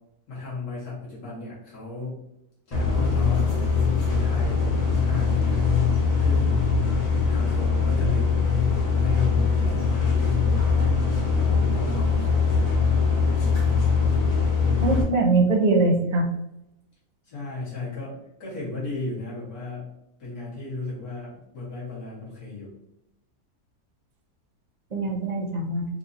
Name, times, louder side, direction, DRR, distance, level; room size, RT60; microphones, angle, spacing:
voice 1, 0.3-2.1 2.7-3.5 4.0-5.7 6.2-6.6 7.3-12.5 12.8-13.0 17.2-19.9 20.2-22.8, left 3 dB, 85° left, -7 dB, 2.1 m, -36 dB
sound 1, 2.7-15.0, left 5 dB, 35° left, 0.6 m, -22 dB
voice 2, 14.8-16.3 24.9-25.8, right 3 dB, 65° right, 0 dB, 0.4 m, -22 dB
4.6 x 2.7 x 2.5 m, 0.83 s
omnidirectional pair, 1.6 m